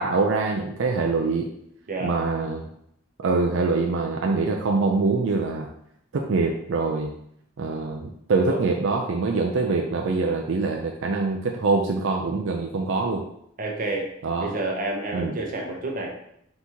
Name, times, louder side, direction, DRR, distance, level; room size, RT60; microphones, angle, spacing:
voice 1, 0.0-1.5 2.0-2.7 3.2-5.7 6.1-7.1 7.6-13.3 14.2-14.5 15.1-15.4, right 3 dB, 70° right, 1 dB, 0.4 m, -24 dB
voice 2, 13.6-14.1 14.4-16.1, right 2 dB, 45° right, 0 dB, 0.8 m, -29 dB
4.1 x 2.9 x 3.5 m, 0.73 s
head